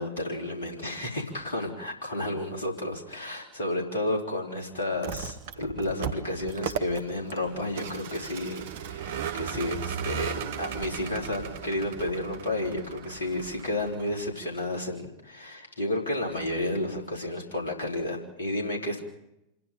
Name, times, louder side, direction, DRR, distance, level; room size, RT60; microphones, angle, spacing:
voice 1, 0.0-19.0, left 1 dB, 65° left, 0 dB, 3.6 m, -31 dB
Vehicle, 4.9-14.3, right 8 dB, 50° right, 1.2 m, -37 dB
27.0 x 10.5 x 9.1 m, 0.85 s
figure-of-eight pair, 90°, 0 cm